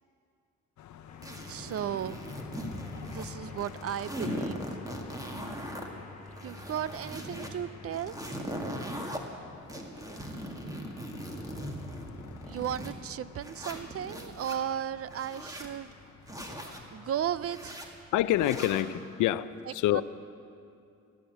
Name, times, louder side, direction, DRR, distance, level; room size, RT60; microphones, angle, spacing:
Car passing by, 0.8-18.0, left 9 dB, 70° left, 0.9 m, -51 dB
sound 1, 1.1-8.4, left 2 dB, 25° left, 1.6 m, -50 dB
sound 2, 1.2-3.3 3.6-5.9 6.3-7.5 7.9-9.2 9.7-12.9 13.4-14.6 15.1-15.7 16.3-16.8 17.4-17.9 18.4-18.9, equal, 10° right, 2.0 m, -39 dB
voice 1, 1.5-2.2 3.0-4.8 6.4-8.2 12.5-15.9 16.9-17.9 19.9-20.0, right 10 dB, 50° right, 17 dB, 0.5 m, -35 dB
voice 2, 18.1-20.0, left 13 dB, 90° left, 15 dB, 0.6 m, -27 dB
17.0 x 10.0 x 8.1 m, 2.5 s
cardioid pair, 90°, 30 cm